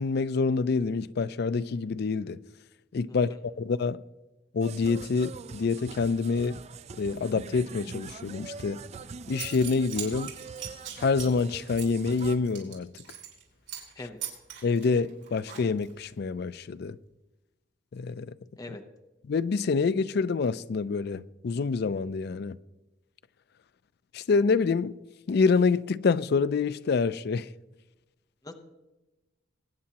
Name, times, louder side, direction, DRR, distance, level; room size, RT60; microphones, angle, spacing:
voice 1, 0.0-2.4 2.9-3.3 3.6-4.0 4.5-6.6 7.0-8.8 9.3-10.4 11.0-12.9 14.6-17.0 17.9-18.4 19.3-22.6 24.1-25.0 25.3-27.5, left 4 dB, 60° left, 0.4 m, -27 dB
voice 2, 3.1-3.4 13.9-14.2 18.6-18.8 28.4-28.5, left 2 dB, 20° left, 0.8 m, -42 dB
sound 1, 4.6-12.4, right 5 dB, 35° right, 0.4 m, -43 dB
Zipper (clothing) / Coin (dropping), 8.9-9.0 9.3-13.4 13.7-13.9 14.2-16.0, right 10 dB, 75° right, 3.9 m, -40 dB
22.0 x 9.5 x 2.9 m
head